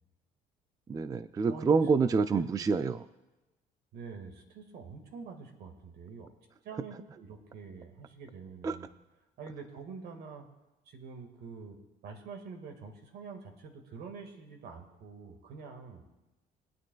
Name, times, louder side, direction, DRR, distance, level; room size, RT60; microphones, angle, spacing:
voice 1, 0.9-3.0 8.6-8.8, right 5 dB, 20° right, 12 dB, 0.3 m, -27 dB
voice 2, 1.5-1.8 2.3-2.8 3.9-6.3 6.6-8.9 9.4-10.5 10.9-11.8 12.0-16.0, right 5 dB, 75° right, 4 dB, 1.8 m, -46 dB
23.0 x 9.2 x 2.3 m, 1.1 s
cardioid pair, 110°, 17 cm